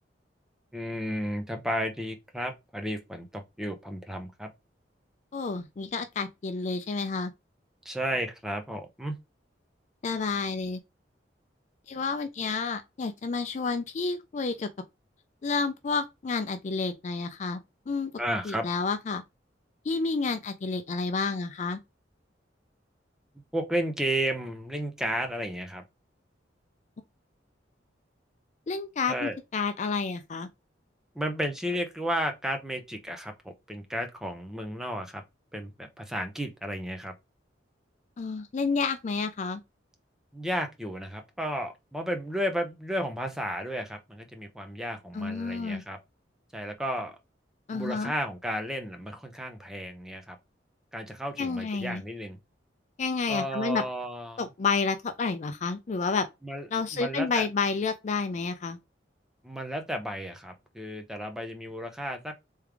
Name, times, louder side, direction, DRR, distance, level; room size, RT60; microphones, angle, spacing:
voice 1, 0.7-4.5 7.8-9.1 18.2-18.7 23.5-25.8 29.1-29.4 31.1-33.3 33.7-35.2 35.5-37.1 40.3-46.0 46.5-47.1 47.7-50.4 50.9-52.4 53.3-54.5 56.4-56.7 56.9-57.5 59.4-62.3, equal, 5° right, 0.7 m, -33 dB
voice 2, 5.3-7.3 10.0-10.8 11.9-14.7 15.4-17.6 17.9-18.1 18.4-19.2 19.8-21.8 28.7-30.5 38.2-39.6 45.1-45.8 47.7-48.1 51.4-52.0 53.0-53.8 54.4-56.2 56.7-58.8, left 4 dB, 40° left, 0.4 m, -30 dB
3.5 x 3.3 x 3.3 m
head